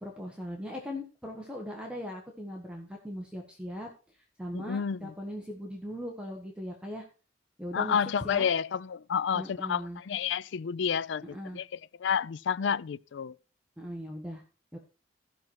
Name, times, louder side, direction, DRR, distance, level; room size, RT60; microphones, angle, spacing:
voice 1, 0.0-7.1 7.6-8.0 8.2-8.5 9.3-10.0 11.2-11.6 13.8-14.4 14.7-14.8, equal, 5° right, 1.3 m, -39 dB
voice 2, 4.5-5.1 7.7-11.7 12.0-13.4, left 7 dB, 70° left, 0.4 m, -30 dB
14.5 x 5.9 x 4.6 m
head